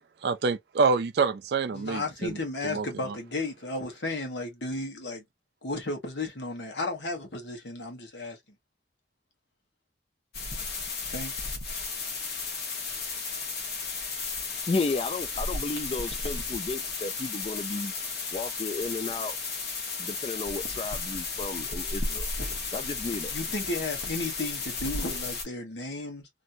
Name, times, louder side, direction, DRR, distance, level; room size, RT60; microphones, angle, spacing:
voice 1, 0.0-2.4 2.6-3.1, right 4 dB, 65° right, 0.4 m, -27 dB
voice 2, 1.7-5.2 5.6-8.4 11.1-11.3 23.3-26.3, left 2 dB, 80° left, 1.3 m, -34 dB
sound 1, 10.3-25.4, left 4 dB, 60° left, 1.2 m, -34 dB
voice 3, 14.7-17.9 18.3-19.4 20.0-22.3 22.7-23.3, left 3 dB, 30° left, 0.3 m, -33 dB
3.0 x 2.6 x 2.7 m
head